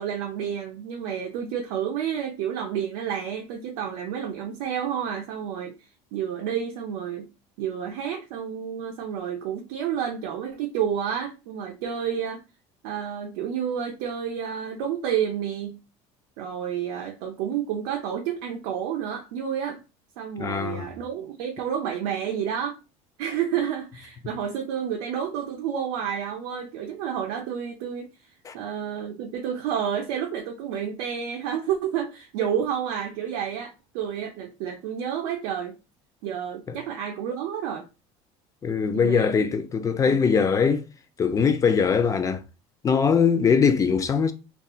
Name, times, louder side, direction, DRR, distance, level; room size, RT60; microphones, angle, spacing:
voice 1, 0.0-5.8 6.1-7.3 7.6-12.4 12.8-15.8 16.4-19.8 20.2-22.8 23.2-35.8 36.2-37.9 38.9-39.3 40.1-40.2 43.3-43.5, right 8 dB, 80° right, 0.5 m, -30 dB
voice 2, 20.4-20.9 28.4-28.5 36.7-36.8 38.6-40.8 41.2-42.4 42.8-44.3, left 6 dB, 20° left, 0.3 m, -21 dB
2.7 x 2.2 x 2.3 m
supercardioid pair, 115°, 15 cm